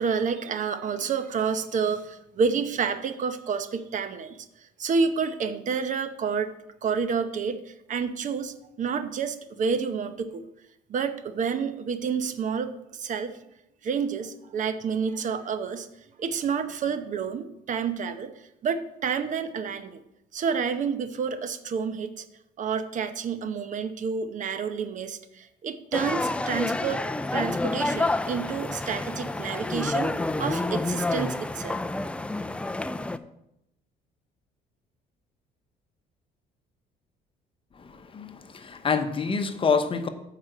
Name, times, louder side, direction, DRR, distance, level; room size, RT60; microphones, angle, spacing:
voice 1, 0.0-4.5 4.8-6.5 6.8-10.5 10.9-13.3 13.8-15.9 16.2-18.3 18.6-20.0 20.3-22.2 22.6-27.0 27.3-30.1 30.4-31.8, right 6 dB, 50° right, 10 dB, 0.9 m, -29 dB
sound 1, 25.9-33.2, left 2 dB, 5° left, 0.4 m, -29 dB
voice 2, 37.8-40.1, left 5 dB, 30° left, 9 dB, 0.9 m, -27 dB
8.8 x 5.0 x 7.7 m, 0.83 s
cardioid pair, 110°, 17 cm